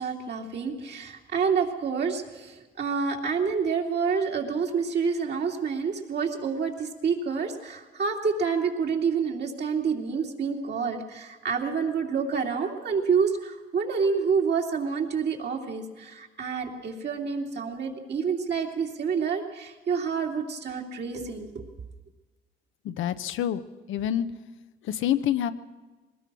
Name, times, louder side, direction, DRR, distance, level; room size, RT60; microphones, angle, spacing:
voice 1, 0.0-21.6, right 5 dB, 60° right, 1 dB, 3.0 m, -28 dB
voice 2, 22.8-23.6 23.9-24.3 24.8-25.5, left 11 dB, 80° left, 10 dB, 0.9 m, -26 dB
22.0 x 19.5 x 6.2 m, 1.2 s
cardioid pair, 90°, 20 cm